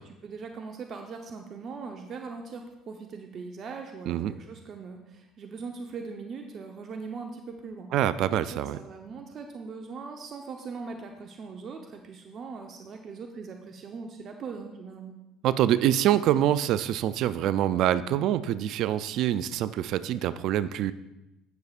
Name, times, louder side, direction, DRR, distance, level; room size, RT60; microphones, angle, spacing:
voice 1, 0.2-7.9 8.5-15.2, right 4 dB, 45° right, 4 dB, 0.8 m, -40 dB
voice 2, 7.9-8.8 15.4-20.9, right 11 dB, 60° right, 15 dB, 0.3 m, -25 dB
16.0 x 6.6 x 2.5 m, 0.95 s
hypercardioid pair, 80°, 0 cm